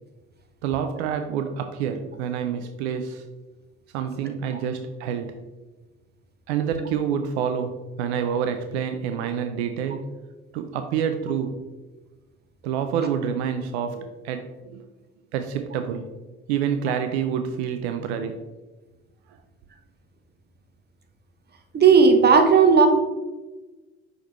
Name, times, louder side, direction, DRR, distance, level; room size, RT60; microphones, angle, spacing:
voice 1, 0.6-3.3 3.9-5.4 6.5-10.1 10.5-11.6 12.6-14.9 15.3-16.0 16.5-18.4, right 7 dB, 75° right, 8 dB, 0.5 m, -27 dB
voice 2, 21.7-22.9, right 5 dB, 30° right, 6 dB, 1.0 m, -14 dB
6.0 x 5.0 x 3.1 m, 1.2 s
hypercardioid pair, 60°, 33 cm